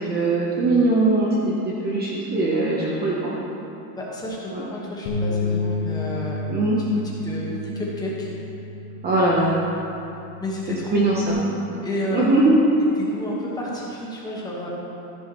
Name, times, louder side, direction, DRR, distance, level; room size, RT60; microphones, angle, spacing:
voice 1, 0.1-3.4 4.5-4.6 6.5-6.8 9.0-9.5 10.9-11.3 12.1-12.7, right 2 dB, 20° right, -5 dB, 0.8 m, -20 dB
voice 2, 3.9-8.3 10.4-11.0 11.3-11.5 11.7-12.3 12.9-14.7, left 1 dB, 10° left, -5 dB, 1.3 m, -31 dB
Bass guitar, 5.1-11.3, left 3 dB, 40° left, 1.3 m, -31 dB
13.5 x 10.0 x 3.0 m, 2.9 s
supercardioid pair, 170°, 48 cm